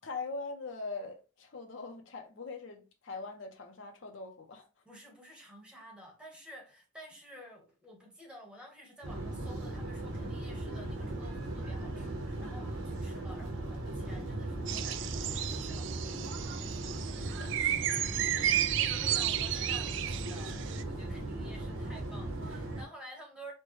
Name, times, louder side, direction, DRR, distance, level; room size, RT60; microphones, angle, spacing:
voice 1, 0.0-4.7 17.4-17.5, left 3 dB, 70° left, 0.6 m, -41 dB
voice 2, 4.8-16.6 16.9-17.5 18.1-23.5, equal, 5° right, 1.1 m, -51 dB
sound 1, 9.0-22.8, right 1 dB, 85° right, 1.0 m, -38 dB
sound 2, 14.7-20.8, right 11 dB, 65° right, 0.3 m, -33 dB
4.3 x 2.2 x 3.1 m
head